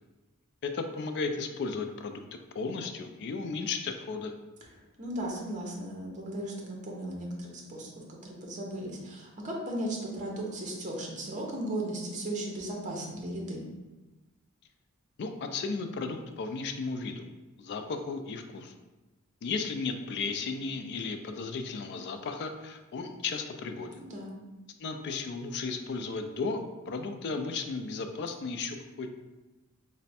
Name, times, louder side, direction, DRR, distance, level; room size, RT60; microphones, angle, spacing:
voice 1, 0.6-4.3 15.2-17.3 17.6-18.7 19.4-24.0 24.8-29.1, left 4 dB, 50° left, 6 dB, 0.3 m, -35 dB
voice 2, 5.0-7.9 8.2-13.6 24.0-24.3, right 1 dB, 35° right, -1 dB, 0.7 m, -36 dB
3.2 x 2.1 x 4.2 m, 1.1 s
head